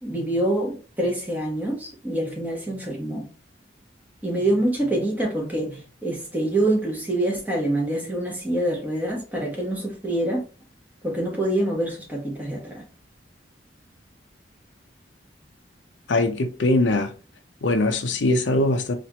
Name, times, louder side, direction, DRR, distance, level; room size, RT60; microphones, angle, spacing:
voice 1, 0.0-3.3 4.2-10.4 11.0-12.8, right 1 dB, 10° right, 1.1 m, -26 dB
voice 2, 16.1-17.1 17.6-18.9, left 2 dB, 85° left, 0.6 m, -21 dB
4.2 x 2.5 x 2.9 m
head